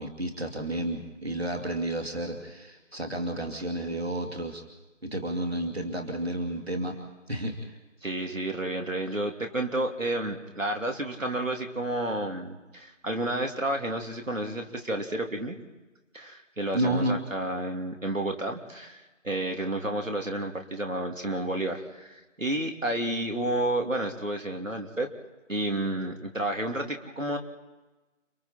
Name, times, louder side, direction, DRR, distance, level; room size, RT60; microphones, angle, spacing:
voice 1, 0.0-4.6 5.0-7.0 7.3-7.8 16.7-17.2, right 1 dB, 55° right, 3 dB, 2.4 m, -31 dB
voice 2, 8.0-15.5 16.1-25.1 25.5-27.4, right 1 dB, 85° right, 3 dB, 2.9 m, -31 dB
30.0 x 21.0 x 4.4 m, 1.1 s
figure-of-eight pair, 175°, 38 cm